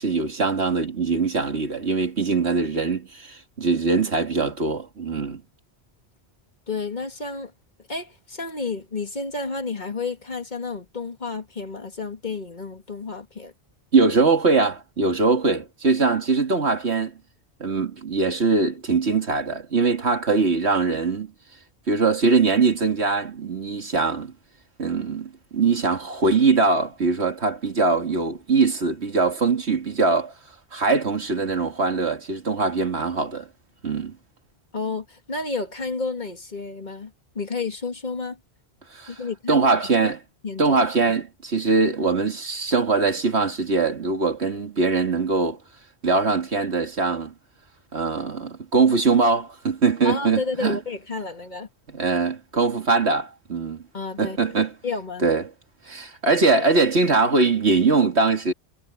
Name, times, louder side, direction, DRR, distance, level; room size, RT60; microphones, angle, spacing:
voice 1, 0.0-5.4 13.9-17.1 17.6-21.3 21.9-24.3 24.8-30.3 30.7-33.5 33.8-34.2 38.9-39.1 39.5-40.2 40.6-45.6 46.0-47.3 47.9-50.8 51.9-53.8 54.2-54.7 55.2-55.5 55.9-58.5, right 4 dB, 80° right, 2.6 m, -22 dB
voice 2, 6.7-7.5 7.9-13.5 34.7-38.4 39.1-39.6 40.0-40.1 40.4-40.8 50.0-51.7 53.9-54.4 54.8-55.3, left 4 dB, 45° left, 2.0 m, -31 dB
omnidirectional pair, 1.1 m